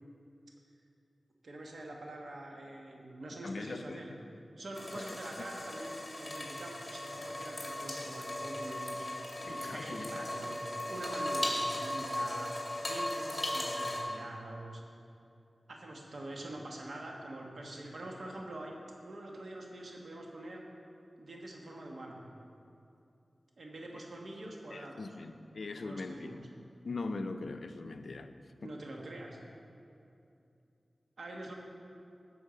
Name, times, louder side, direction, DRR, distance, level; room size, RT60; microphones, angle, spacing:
voice 1, 1.4-4.1 4.6-9.1 9.4-12.5 12.8-14.8 15.7-20.6 21.2-22.2 23.6-25.1 25.7-26.4 28.6-29.4 31.2-31.5, right 1 dB, 75° right, 0 dB, 1.4 m, -45 dB
voice 2, 3.4-4.0 4.9-5.2 9.4-10.1 23.9-24.0 24.4-26.4 26.8-28.3 28.6-28.7, left 3 dB, 80° left, 8 dB, 0.5 m, -41 dB
sound 1, 4.7-14.0, left 1 dB, 40° left, 2.0 m, -37 dB
11.0 x 7.1 x 5.1 m, 2.7 s
wide cardioid pair, 75°, 0 cm